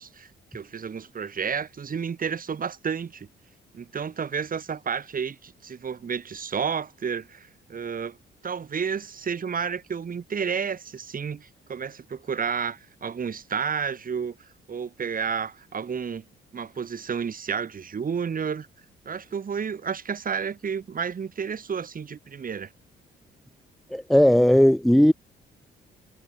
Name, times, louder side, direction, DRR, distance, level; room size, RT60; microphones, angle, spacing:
voice 1, 0.0-3.3 3.7-8.2 8.4-14.4 14.7-16.2 16.5-18.7 19.1-22.7, right 6 dB, 45° right, 5.8 m, -31 dB
voice 2, 23.9-25.1, equal, ahead, 0.6 m, -17 dB
cardioid pair, 90°, 20 cm